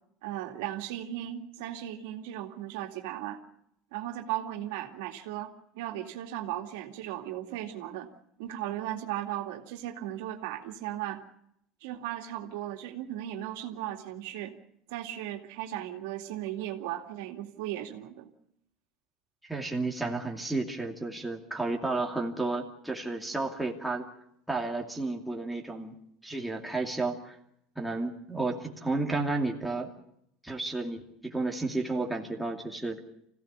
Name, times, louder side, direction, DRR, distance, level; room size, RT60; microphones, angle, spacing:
voice 1, 0.2-3.4 3.9-8.1 8.4-11.2 11.8-14.5 14.9-18.3, right 12 dB, 85° right, 4 dB, 2.4 m, -36 dB
voice 2, 19.4-24.0 24.5-25.9 26.2-27.4 27.8-29.9 30.4-33.0, right 2 dB, ahead, -1 dB, 2.5 m, -32 dB
25.5 x 16.5 x 8.2 m, 0.76 s
cardioid pair, 150°, 0 cm